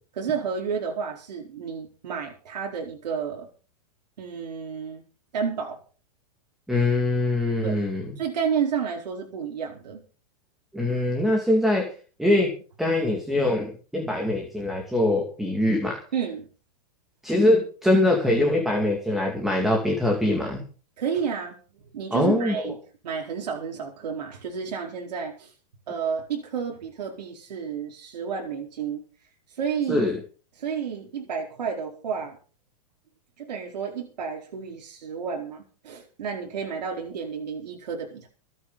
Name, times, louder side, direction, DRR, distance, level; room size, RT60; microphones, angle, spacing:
voice 1, 0.2-3.5 4.2-5.0 5.3-5.8 7.6-7.8 8.2-10.0 16.1-16.5 21.0-21.5 21.9-22.7 23.0-25.5 25.9-29.0 29.5-30.0 30.6-32.4 33.4-38.3, right 6 dB, 90° right, -1 dB, 4.5 m, -31 dB
voice 2, 6.7-8.0 10.7-11.9 12.2-12.5 12.8-16.0 17.2-20.6 22.1-22.7 29.9-30.2, left 1 dB, ahead, 0 dB, 2.5 m, -23 dB
26.0 x 9.3 x 4.1 m, 0.39 s
supercardioid pair, 170°, 21 cm